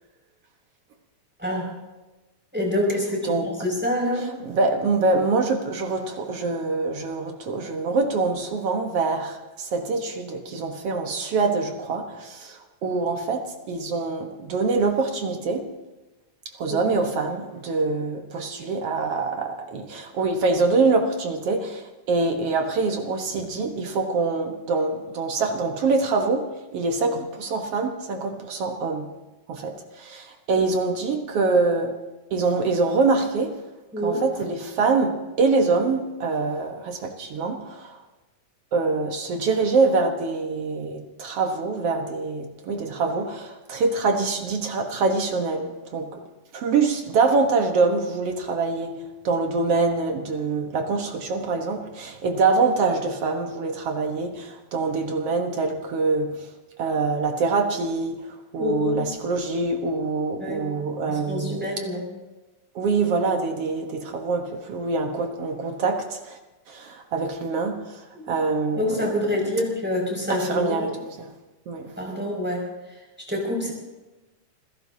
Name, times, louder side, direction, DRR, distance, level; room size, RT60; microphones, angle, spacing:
voice 1, 2.5-4.3 16.7-16.8 33.9-34.2 58.6-59.0 60.4-60.7 61.1-62.1 68.1-68.2 68.8-70.9 72.0-72.7 73.3-73.7, left 1 dB, 5° right, -1 dB, 5.6 m, -26 dB
voice 2, 4.2-15.7 16.6-29.1 29.5-32.0 32.3-33.6 34.0-38.0 38.7-46.2 46.5-56.5 56.8-61.7 62.8-66.4 66.7-69.1 70.3-71.3 71.7-72.0, right 3 dB, 60° right, 4 dB, 2.1 m, -25 dB
28.5 x 16.5 x 2.8 m, 1.1 s
omnidirectional pair, 3.4 m